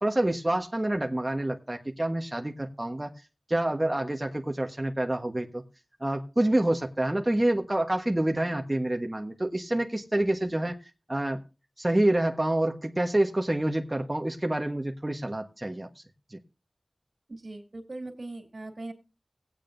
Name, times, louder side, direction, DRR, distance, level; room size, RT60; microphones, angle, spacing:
voice 1, 0.0-3.1 3.5-5.6 6.0-10.8 11.1-11.4 11.8-16.0 16.3-16.4, right 1 dB, 25° right, 3 dB, 1.3 m, -27 dB
voice 2, 17.3-18.9, right 2 dB, 70° right, 4 dB, 2.7 m, -40 dB
17.5 x 8.9 x 2.6 m, 0.30 s
wide cardioid pair, 55°, 0 cm